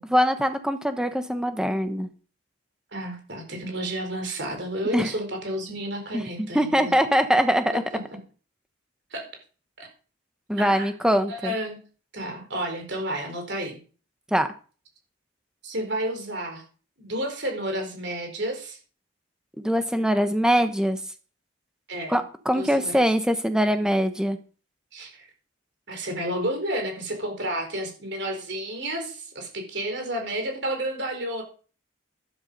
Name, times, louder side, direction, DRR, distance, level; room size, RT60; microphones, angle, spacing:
voice 1, 0.1-2.1 4.9-5.1 6.1-7.8 10.5-11.5 14.3-14.5 19.6-21.0 22.1-24.4, equal, 5° right, 8 dB, 1.1 m, -23 dB
voice 2, 2.9-6.9 7.7-8.0 9.1-9.2 9.8-9.9 10.6-10.9 11.3-11.8 12.1-13.8 15.6-16.6 17.0-18.8 21.9-22.2 22.5-23.1 24.9-25.3 25.9-31.4, right 1 dB, 55° right, 4 dB, 4.5 m, -31 dB
12.0 x 12.0 x 5.4 m, 0.39 s
head